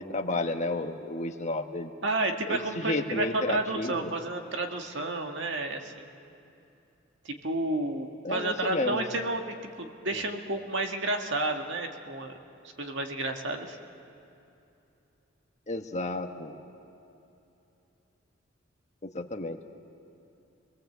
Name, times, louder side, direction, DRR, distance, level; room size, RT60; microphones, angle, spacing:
voice 1, 0.0-1.9 2.5-4.1 8.2-9.0 10.1-10.2 15.7-16.6 19.0-19.6, left 2 dB, 35° left, 5 dB, 1.2 m, -32 dB
voice 2, 2.0-6.0 7.3-12.3 12.8-13.8, right 2 dB, 65° right, 4 dB, 1.8 m, -31 dB
27.0 x 20.5 x 8.0 m, 2.8 s
head